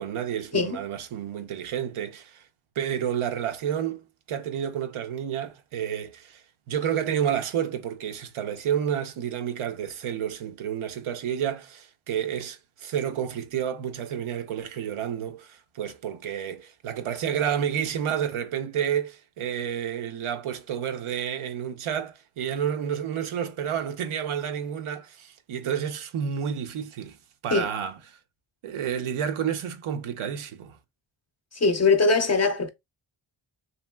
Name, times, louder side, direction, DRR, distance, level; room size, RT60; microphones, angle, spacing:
voice 1, 0.0-2.4 2.8-27.2 27.4-27.9 28.6-30.8, right 9 dB, 75° right, 0.6 m, -30 dB
voice 2, 31.5-32.7, left 3 dB, 35° left, 0.5 m, -21 dB
2.8 x 2.8 x 2.2 m
cardioid pair, 60°, 50 cm